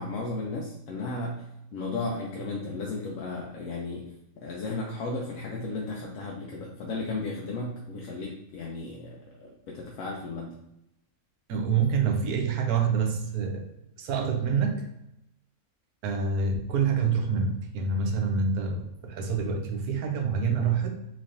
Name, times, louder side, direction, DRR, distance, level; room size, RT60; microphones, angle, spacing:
voice 1, 0.0-10.6, left 3 dB, 70° left, -1 dB, 0.9 m, -35 dB
voice 2, 11.5-13.7 14.0-14.9 16.0-21.0, right 5 dB, 85° right, 4 dB, 1.1 m, -27 dB
4.1 x 3.2 x 2.6 m, 0.84 s
omnidirectional pair, 1.5 m